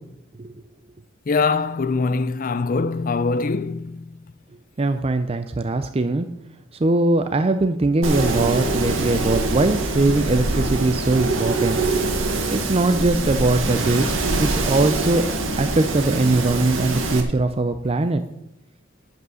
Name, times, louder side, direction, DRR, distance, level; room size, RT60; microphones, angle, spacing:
voice 1, 1.3-4.0, left 4 dB, 45° left, 0.5 m, -23 dB
voice 2, 4.8-6.3 6.8-11.9 12.5-18.2, right 2 dB, 30° right, 0.5 m, -21 dB
Wind, 8.0-17.2, right 2 dB, 70° right, 1.6 m, -24 dB
9.6 x 8.1 x 6.3 m
head